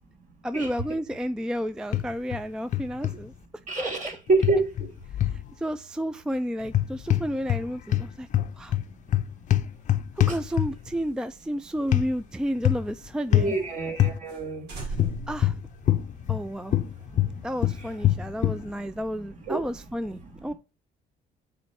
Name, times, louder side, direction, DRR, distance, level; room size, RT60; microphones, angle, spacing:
voice 1, 0.4-3.3 3.8-3.9 5.3-8.3 8.6-8.8 10.3-13.6 14.8-14.9 15.3-15.5 16.3-16.8 17.4-20.5, equal, 5° right, 0.3 m, -31 dB
sound 1, 1.9-2.4 2.7-3.2 4.4-5.4 6.7-7.6 7.9-10.9 11.9-12.1 12.6-12.9 13.3-13.5 14.0-14.2 15.0-16.4 16.7-18.6, left 12 dB, 45° left, 0.6 m, -24 dB
voice 2, 3.7-4.6 13.3-14.7 19.5-19.6, right 3 dB, 45° right, 2.6 m, -26 dB
sound 2, 10.4-13.2 13.5-13.6 13.9-14.0 14.3-14.4 14.7-16.4, right 3 dB, 85° right, 2.2 m, -40 dB
6.8 x 4.3 x 4.6 m
cardioid pair, 110°, 17 cm